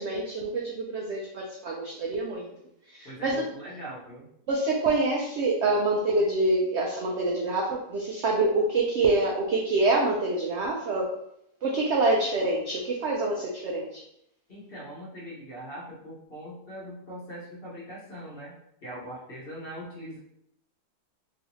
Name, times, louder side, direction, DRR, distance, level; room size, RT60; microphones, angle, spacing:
voice 1, 0.0-2.5 2.9-3.3 4.5-11.1 11.6-14.0, right 2 dB, 80° right, -1 dB, 0.6 m, -26 dB
voice 2, 3.0-4.3 14.5-18.6 18.8-20.2, equal, 45° left, -6 dB, 1.0 m, -41 dB
3.1 x 2.7 x 2.9 m, 0.76 s
omnidirectional pair, 1.7 m